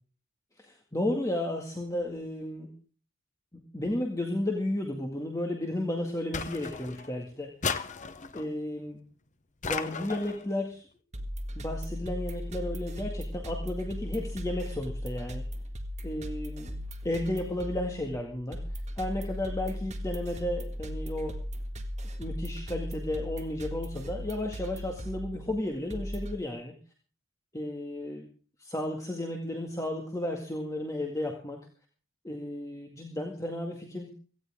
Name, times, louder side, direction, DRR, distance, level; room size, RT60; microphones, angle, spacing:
voice 1, 0.6-2.7 3.7-7.5 8.3-9.0 9.6-10.9 11.6-15.4 16.0-16.7 17.0-21.4 22.2-26.8 27.5-28.3 28.6-31.6 32.2-34.1, left 1 dB, 15° left, 1 dB, 1.9 m, -33 dB
sound 1, 6.3-7.1 7.6-8.5 9.6-10.4, left 5 dB, 35° left, 0.9 m, -35 dB
sound 2, 11.1-26.4, equal, 35° right, 1.8 m, -37 dB
17.5 x 15.5 x 3.7 m, 0.40 s
head